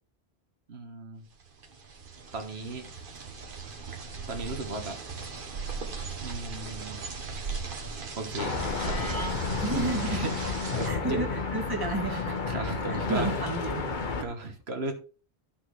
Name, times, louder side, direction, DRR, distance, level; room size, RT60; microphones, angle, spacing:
voice 1, 0.7-1.3 2.3-2.9 4.3-5.3 6.2-7.0 8.2-10.4 10.7-11.2 12.0-13.3 14.2-14.9, right 3 dB, 75° right, 4 dB, 1.5 m, -37 dB
sound 1, 1.4-10.9, right 4 dB, 55° right, 1.3 m, -38 dB
sound 2, 8.4-14.2, left 4 dB, 50° left, 1.0 m, -32 dB
Wind instrument woodwind instrument, 8.6-13.4, left 3 dB, 35° left, 1.4 m, -38 dB
voice 2, 9.6-10.5 10.8-12.4 12.9-14.3, right 2 dB, 20° right, 2 dB, 1.5 m, -32 dB
12.0 x 5.8 x 3.2 m, 0.38 s
omnidirectional pair, 1.1 m